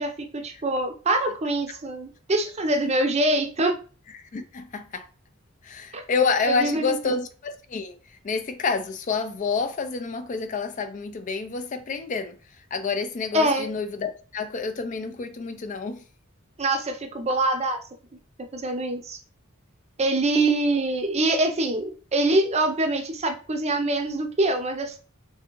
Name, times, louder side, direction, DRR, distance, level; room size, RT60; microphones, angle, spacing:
voice 1, 0.0-3.8 5.9-6.0 6.5-7.2 13.3-13.7 16.6-17.8 18.5-19.2 20.0-25.0, right 2 dB, 30° right, 0.6 m, -24 dB
voice 2, 4.3-5.1 5.6-8.0 8.2-12.3 12.7-16.0, left 4 dB, 40° left, 0.4 m, -28 dB
3.5 x 3.4 x 3.0 m
head